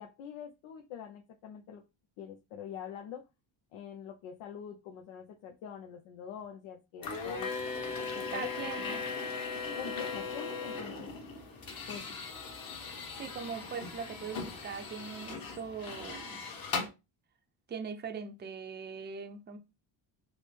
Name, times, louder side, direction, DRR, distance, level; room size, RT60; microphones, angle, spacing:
voice 1, 0.0-1.8 2.2-3.2 3.7-7.5 8.1-8.5 8.7-9.0 9.8-11.1 11.9-12.1, left 8 dB, 85° left, 3 dB, 0.7 m, -45 dB
sound 1, 7.0-16.9, left 4 dB, 50° left, 1.2 m, -38 dB
voice 2, 8.1-9.3 10.9-11.1 13.2-16.4 17.7-19.6, right 6 dB, 20° right, 6 dB, 0.5 m, -41 dB
4.9 x 2.0 x 3.2 m, 0.25 s
cardioid pair, 95°, 47 cm